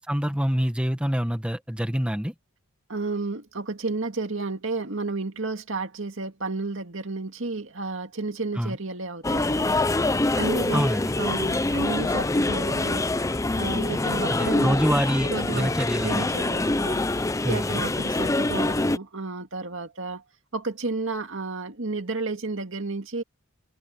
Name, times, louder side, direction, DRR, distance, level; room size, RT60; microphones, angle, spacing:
voice 1, 0.0-2.3 8.6-8.8 10.7-11.1 14.3-16.2 17.4-17.8, equal, 5° right, 1.5 m, -26 dB
voice 2, 2.9-9.8 10.3-10.9 11.2-13.0 13.6-14.8 15.2-17.0 17.4-20.2 20.5-23.2, right 3 dB, 60° right, 2.2 m, -32 dB
sound 1, 9.2-19.0, left 2 dB, 15° left, 0.5 m, -25 dB
head